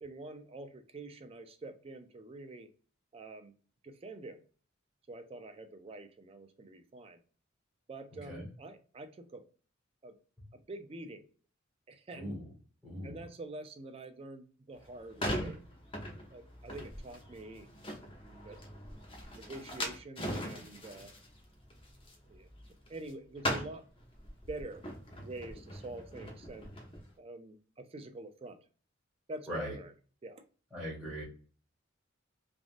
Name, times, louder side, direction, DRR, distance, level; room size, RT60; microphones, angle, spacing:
voice 1, 0.0-2.7 3.1-3.5 3.8-4.4 5.1-7.2 7.9-9.4 10.0-10.2 10.5-11.3 11.9-12.4 13.0-15.6 16.3-17.7 18.2-18.6 19.3-21.1 22.3-22.5 22.9-23.9 24.5-24.8 25.2-26.7 27.2-28.6 29.3-29.9 30.2-30.4, right 2 dB, 30° right, 8 dB, 0.4 m, -46 dB
voice 2, 12.2-12.5 12.8-13.2 29.5-29.7 30.7-31.2, equal, 5° right, -7 dB, 1.3 m, -39 dB
sound 1, 14.7-23.1 23.4-27.0, equal, 25° left, 0.7 m, -40 dB
3.5 x 2.4 x 2.5 m, 0.39 s
head